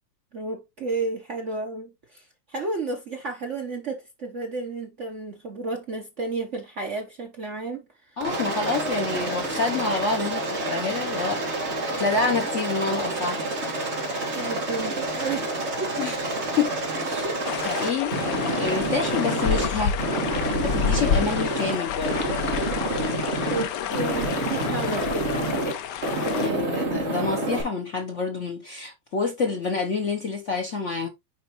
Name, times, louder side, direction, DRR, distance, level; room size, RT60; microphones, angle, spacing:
voice 1, 0.3-8.2 14.2-15.5 15.8-16.0 17.2-17.3 23.5-25.4 26.2-26.6, right 3 dB, 50° right, 0.9 m, -32 dB
voice 2, 8.2-11.4 11.9-13.4 16.0-16.2 16.6-17.4 17.6-20.0 20.3-22.4 26.4-31.1, left 4 dB, 50° left, 0.9 m, -28 dB
Aircraft, 8.2-19.7 20.0-21.8 22.0-23.6 23.9-25.7 26.0-27.6, right 2 dB, 35° right, 1.8 m, -28 dB
sound 1, 17.4-26.5, left 7 dB, 70° left, 1.1 m, -29 dB
7.0 x 5.1 x 2.9 m
omnidirectional pair, 2.3 m